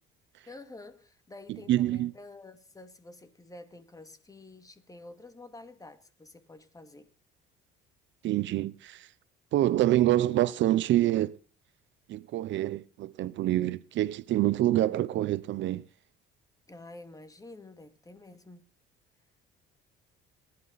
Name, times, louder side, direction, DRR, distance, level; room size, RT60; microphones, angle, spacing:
voice 1, 0.5-7.1 14.8-15.1 16.7-18.7, left 2 dB, 15° left, 2.4 m, -49 dB
voice 2, 1.7-2.1 8.2-9.1 9.5-11.3 12.1-15.8, right 14 dB, 60° right, 0.7 m, -26 dB
21.5 x 11.5 x 4.1 m
cardioid pair, 105°, 21 cm